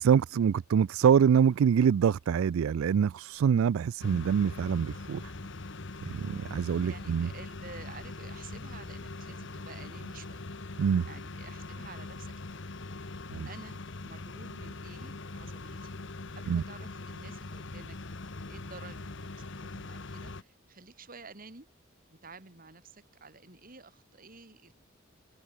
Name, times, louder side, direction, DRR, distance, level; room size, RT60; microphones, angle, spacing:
voice 1, 0.0-5.2 6.1-7.3 10.8-11.1 13.3-13.5 16.5-16.6, right 7 dB, 80° right, 0.3 m, -25 dB
sound 1, 4.0-20.4, left 2 dB, 60° left, 1.2 m, -42 dB
voice 2, 6.8-10.4 11.0-12.7 13.5-16.0 16.4-18.0 18.5-21.7 22.1-24.7, right 4 dB, 45° right, 2.6 m, -51 dB
head